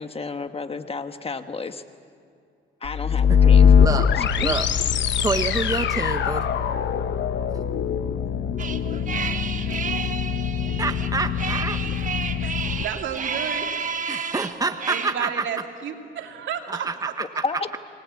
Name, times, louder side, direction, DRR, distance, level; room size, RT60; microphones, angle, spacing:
voice 1, 0.0-1.8 2.8-4.6 17.4-17.8, left 4 dB, 30° left, 9 dB, 1.3 m, -32 dB
sound 1, 2.8-12.8, left 7 dB, 65° left, 1.0 m, -22 dB
voice 2, 3.8-4.1 4.4-4.7 5.2-6.5 10.8-12.3 14.1-15.4 16.7-17.4, right 3 dB, 20° right, 8 dB, 1.1 m, -27 dB
sound 2, 8.6-15.1, right 5 dB, 40° right, 1.3 m, -31 dB
voice 3, 12.4-13.7 14.9-16.9, right 8 dB, 70° right, 3 dB, 2.7 m, -32 dB
28.0 x 19.5 x 8.4 m, 2.3 s
cardioid pair, 90°, 20 cm